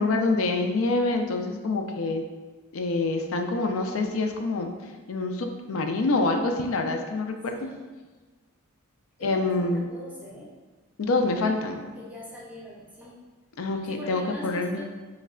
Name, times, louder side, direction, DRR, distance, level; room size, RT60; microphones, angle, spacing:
voice 1, 0.0-2.2 2.7-4.7 5.1-7.6 9.2-9.9 11.0-11.9 13.6-14.8, left 3 dB, 70° left, 5 dB, 0.4 m, -26 dB
voice 2, 9.2-10.5 12.0-13.2 13.9-14.8, equal, 5° right, -5 dB, 0.6 m, -42 dB
3.2 x 3.1 x 3.7 m, 1.3 s
head